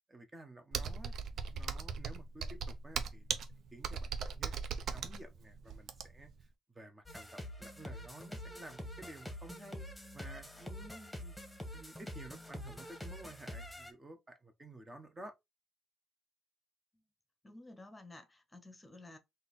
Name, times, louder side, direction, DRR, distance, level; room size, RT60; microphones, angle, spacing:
voice 1, 0.1-1.1 1.5-3.4 3.7-4.5 4.9-9.9 10.1-11.5 11.7-15.3, right 2 dB, 20° right, 0.9 m, -53 dB
Computer keyboard, 0.7-6.3, right 6 dB, 65° right, 0.6 m, -38 dB
sound 1, 7.1-13.9, left 1 dB, 5° left, 1.4 m, -46 dB
voice 2, 17.4-19.2, left 2 dB, 20° left, 0.9 m, -53 dB
3.8 x 2.7 x 4.1 m
cardioid pair, 90°, 0 cm